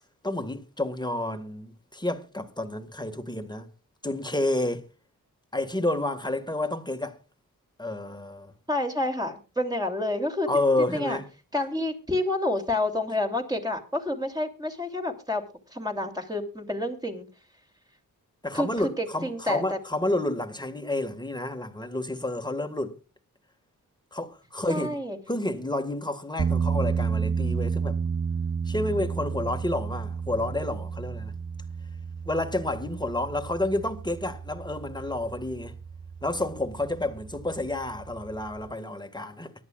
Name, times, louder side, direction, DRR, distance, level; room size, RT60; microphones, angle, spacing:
voice 1, 0.2-3.7 4.0-4.9 5.5-7.2 7.8-8.5 10.5-11.3 18.4-23.0 24.1-25.0 25.3-28.0 28.7-31.3 32.3-35.8 36.2-39.6, left 1 dB, 10° left, 1.8 m, -30 dB
voice 2, 8.7-10.5 10.8-11.2 11.5-15.4 15.7-17.3 18.5-18.7 19.0-19.8 24.7-25.2, left 1 dB, 10° right, 3.0 m, -29 dB
sound 1, 26.4-38.7, right 6 dB, 30° right, 0.5 m, -32 dB
23.5 x 11.0 x 2.4 m
cardioid pair, 70°, 36 cm